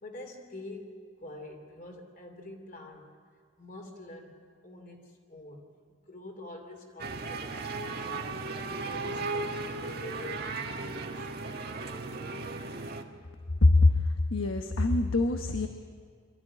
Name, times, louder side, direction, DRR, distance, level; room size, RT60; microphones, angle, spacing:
voice 1, 0.0-3.1 3.6-11.3, left 1 dB, 45° left, 3 dB, 3.1 m, -46 dB
sound 1, 7.0-13.0, right 3 dB, 50° right, 1.6 m, -36 dB
voice 2, 13.6-13.9 14.3-15.7, left 2 dB, 90° left, 6 dB, 1.1 m, -23 dB
24.5 x 14.5 x 9.8 m, 2.1 s
head